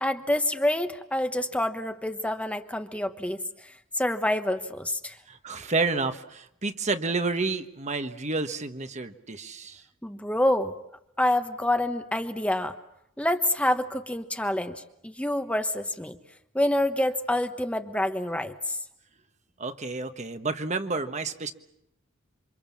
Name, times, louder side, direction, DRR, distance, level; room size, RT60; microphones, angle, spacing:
voice 1, 0.0-3.4 3.9-5.2 10.0-10.7 11.2-12.7 13.2-16.2 16.5-18.8, left 1 dB, 5° left, 7 dB, 1.2 m, -27 dB
voice 2, 5.3-9.8 19.6-21.5, right 3 dB, 35° right, 8 dB, 1.4 m, -30 dB
28.0 x 26.0 x 7.4 m, 0.79 s
head